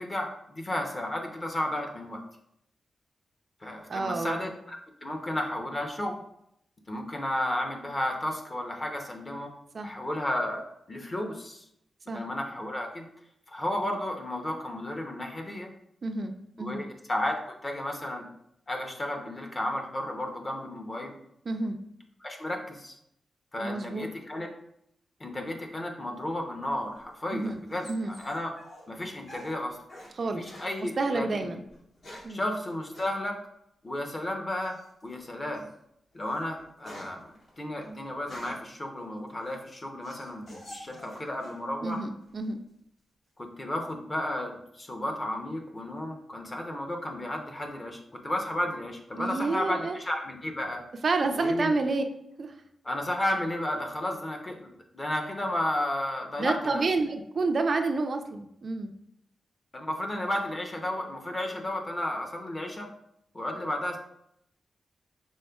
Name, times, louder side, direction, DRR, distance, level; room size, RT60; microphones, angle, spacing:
voice 1, 0.0-2.2 3.6-6.2 6.9-9.5 9.8-10.6 10.9-11.6 12.1-13.0 13.5-15.7 16.6-18.3 18.7-21.1 22.2-22.9 23.5-24.5 25.2-28.5 28.9-29.8 30.2-31.5 32.3-33.4 33.8-35.7 36.1-42.0 43.4-50.8 51.4-51.7 52.8-54.7 54.9-56.8 59.7-62.9 63.3-64.0, left 1 dB, 25° left, 3 dB, 0.6 m, -33 dB
voice 2, 3.9-4.5 9.7-9.9 12.1-12.2 16.0-16.8 21.5-21.8 23.6-24.1 27.3-27.6 27.9-28.1 30.2-30.4 31.0-31.6 32.2-32.4 41.8-42.6 49.2-50.0 51.0-52.0 52.4-52.6 56.4-58.9, right 3 dB, 45° right, 5 dB, 0.3 m, -29 dB
sound 1, 26.9-30.1 30.4-30.7 31.7-32.4 32.9-33.1 34.6-35.0 35.5-35.7 36.1-38.7 39.3-41.6 41.9-42.5, left 1 dB, 70° left, 1.6 m, -48 dB
5.3 x 3.4 x 2.2 m, 0.76 s
wide cardioid pair, 125°, 0 cm